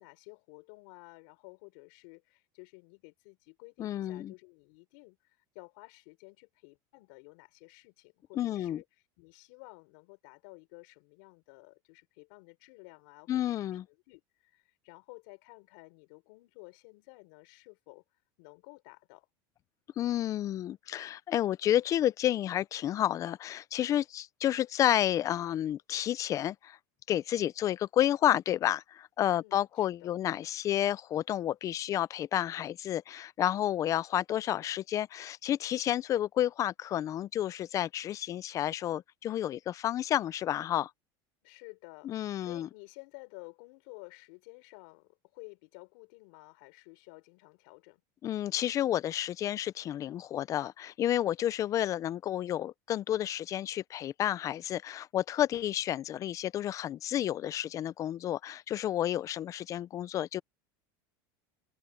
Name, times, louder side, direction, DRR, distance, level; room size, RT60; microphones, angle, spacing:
voice 1, 0.0-8.8 9.2-13.6 13.9-18.0 18.4-19.3 29.3-30.1 41.4-48.0, left 30 dB, 70° left, 5.3 m, -53 dB
voice 2, 3.8-4.3 8.4-8.8 13.3-13.8 20.0-26.8 27.1-40.9 42.0-42.7 48.2-60.4, left 12 dB, 30° left, 0.5 m, -30 dB
supercardioid pair, 150°, 11 cm